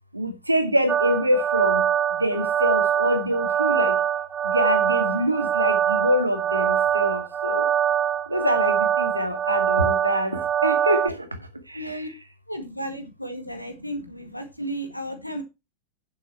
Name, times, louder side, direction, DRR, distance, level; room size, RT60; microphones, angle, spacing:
voice 1, 0.1-1.8 2.2-4.0 4.4-7.7 8.3-12.1 13.8-13.9, equal, 85° right, 1.7 m, -25 dB
sound 1, 0.9-11.1, right 9 dB, 25° right, 0.7 m, -23 dB
voice 2, 11.7-12.1 12.5-15.4, right 1 dB, 90° left, 2.0 m, -34 dB
9.9 x 7.5 x 4.5 m
figure-of-eight pair, 90°, 0 cm